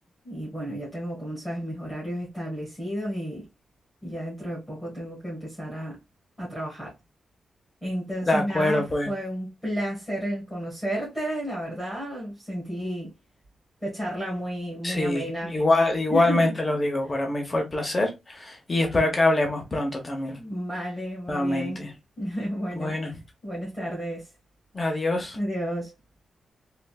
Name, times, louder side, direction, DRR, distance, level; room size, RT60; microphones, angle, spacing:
voice 1, 0.2-3.5 4.0-6.0 6.4-6.9 7.8-13.1 13.8-15.6 16.1-16.5 20.4-21.8 22.2-23.0 23.4-24.3 25.3-25.9, equal, ahead, 1.4 m, -32 dB
voice 2, 8.2-9.1 14.8-20.4 21.3-21.9 22.8-23.1 24.7-25.4, left 2 dB, 20° left, 0.8 m, -24 dB
3.2 x 2.5 x 2.2 m
wide cardioid pair, 170°, 0 cm